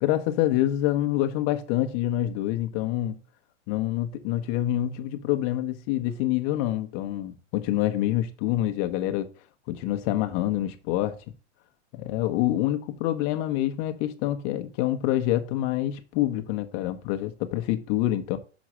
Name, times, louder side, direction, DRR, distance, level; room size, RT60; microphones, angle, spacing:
voice 1, 0.0-3.2 3.7-9.3 9.7-11.2 11.9-18.4, left 13 dB, 45° left, 1.1 m, -26 dB
6.3 x 3.9 x 6.2 m
hypercardioid pair, 120°, 36 cm